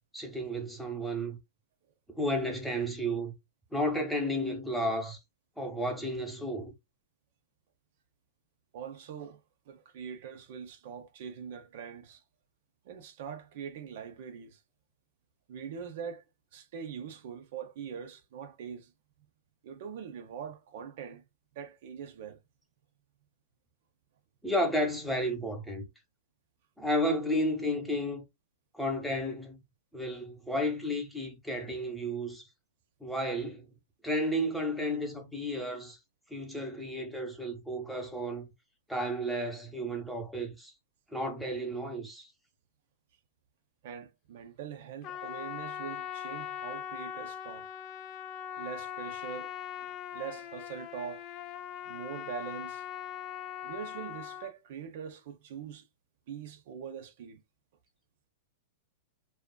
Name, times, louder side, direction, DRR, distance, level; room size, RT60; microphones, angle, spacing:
voice 1, 0.1-1.4 2.1-3.3 3.7-5.2 5.6-6.7 24.4-25.9 26.8-28.2 28.7-29.6 29.9-32.4 33.0-33.7 34.0-36.0 36.3-38.5 38.9-40.7 41.1-42.3, equal, ahead, 0.8 m, -32 dB
voice 2, 8.7-9.4 9.7-12.2 12.8-14.6 15.5-16.2 16.5-18.9 19.6-21.2 21.5-22.4 43.8-47.7 48.6-49.5 49.8-51.3 51.9-52.8 53.6-55.9 56.3-57.4, right 7 dB, 60° right, 0.5 m, -43 dB
Trumpet, 45.0-54.5, left 10 dB, 40° left, 0.3 m, -41 dB
2.6 x 2.3 x 2.2 m
hypercardioid pair, 130°, 0 cm